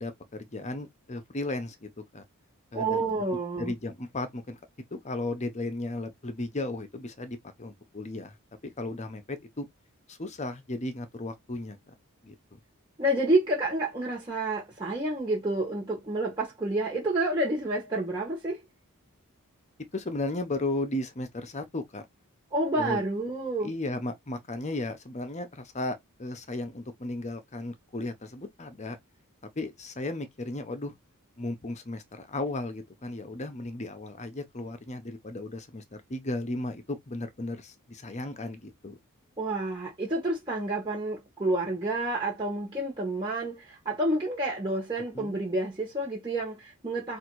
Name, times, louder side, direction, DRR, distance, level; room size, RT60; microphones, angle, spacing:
voice 1, 0.0-2.2 2.7-3.0 3.3-4.6 4.9-8.4 8.6-9.7 10.1-11.9 12.2-12.6 19.9-22.0 22.8-23.0 23.6-29.0 29.6-30.9 31.4-39.0 45.1-45.4, left 2 dB, 30° left, 0.8 m, -35 dB
voice 2, 2.7-3.7 13.0-18.6 22.5-23.7 39.4-47.2, right 2 dB, 20° right, 1.2 m, -29 dB
3.6 x 2.6 x 4.6 m
head